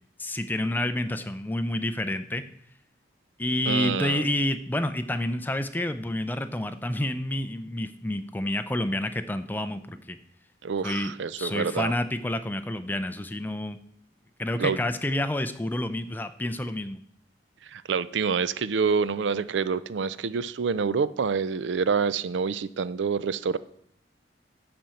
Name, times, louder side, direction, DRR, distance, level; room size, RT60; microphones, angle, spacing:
voice 1, 0.2-2.4 3.4-10.2 10.8-11.1 11.4-13.8 14.4-17.0, left 1 dB, 10° left, 10 dB, 0.5 m, -29 dB
voice 2, 3.7-4.2 10.6-11.9 14.6-14.8 17.6-23.6, right 5 dB, 80° right, 16 dB, 0.4 m, -27 dB
10.5 x 4.3 x 7.6 m, 0.66 s
head